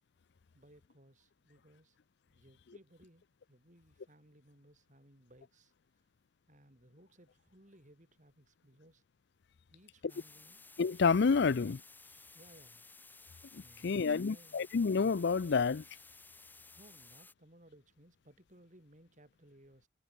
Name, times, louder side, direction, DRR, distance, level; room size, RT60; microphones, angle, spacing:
voice 1, 0.5-2.0 2.3-5.7 6.5-9.0 9.7-10.6 11.5-11.6 12.3-12.9 13.6-14.7 16.8-19.9, right 1 dB, 40° right, 5.7 m, -62 dB
sound 1, 10.1-17.3, left 3 dB, 10° left, 2.1 m, -56 dB
voice 2, 10.8-11.8 13.5-15.8, left 5 dB, 60° left, 0.5 m, -29 dB
head